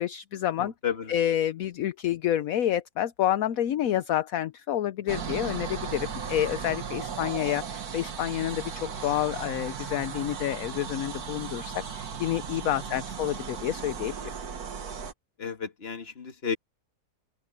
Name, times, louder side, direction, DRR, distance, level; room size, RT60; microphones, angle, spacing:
voice 1, 0.0-0.7 1.1-14.1, left 11 dB, 65° left, 1.1 m, -29 dB
voice 2, 0.8-1.2 12.9-13.0 15.4-16.6, left 7 dB, 40° left, 1.8 m, -32 dB
sound 1, 5.1-15.1, right 6 dB, 65° right, 1.9 m, -36 dB
open air
omnidirectional pair, 1.7 m